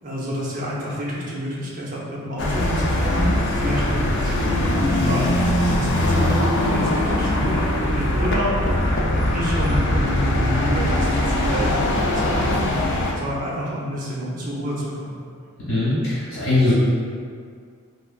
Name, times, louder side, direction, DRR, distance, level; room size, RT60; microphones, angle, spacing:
voice 1, 0.0-6.3 6.6-15.2, equal, 40° right, -6 dB, 0.6 m, -29 dB
sound 1, 2.4-13.1, left 1 dB, 55° left, 0.4 m, -21 dB
voice 2, 15.7-16.7, left 2 dB, 70° left, -13 dB, 1.4 m, -20 dB
3.3 x 2.5 x 2.3 m, 2.1 s
head